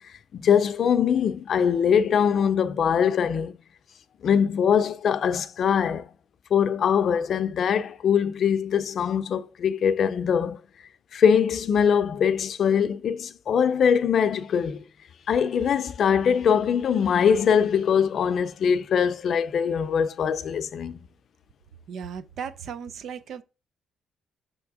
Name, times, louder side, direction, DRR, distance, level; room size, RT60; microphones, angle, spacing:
voice 1, 0.3-3.5 4.2-6.1 6.5-10.6 11.1-14.8 15.3-21.0, left 7 dB, 55° left, 0.6 m, -22 dB
voice 2, 21.9-23.4, right 7 dB, 65° right, 0.6 m, -36 dB
6.7 x 3.5 x 4.9 m
cardioid pair, 105°, 0 cm